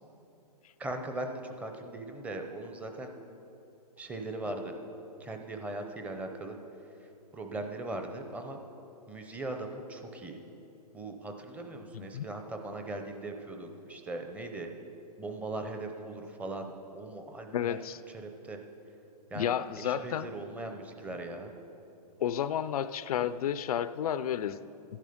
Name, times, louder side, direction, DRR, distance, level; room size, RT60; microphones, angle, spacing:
voice 1, 0.8-3.1 4.0-4.7 5.2-6.6 7.3-8.6 9.1-10.4 10.9-14.7 15.2-17.8 18.1-18.6 19.3-21.5, right 2 dB, 5° right, 5 dB, 0.6 m, -39 dB
voice 2, 11.9-12.3 17.5-18.0 19.3-20.3 22.2-24.6, left 9 dB, 65° left, 14 dB, 0.4 m, -31 dB
12.5 x 11.0 x 5.1 m, 2.9 s
hypercardioid pair, 150°, 21 cm